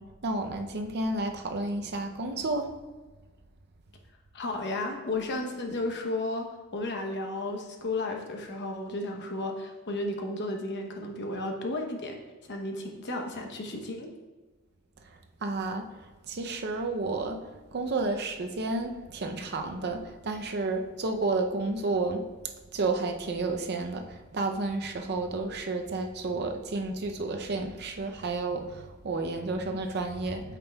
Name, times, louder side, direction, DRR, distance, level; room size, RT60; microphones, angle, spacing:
voice 1, 0.0-2.7 15.1-17.4 17.7-22.3 22.7-30.6, right 3 dB, 50° right, 5 dB, 0.6 m, -31 dB
voice 2, 4.3-6.5 6.7-12.2 12.4-14.1, left 2 dB, 55° left, 3 dB, 0.9 m, -33 dB
8.6 x 5.9 x 2.3 m, 1.3 s
head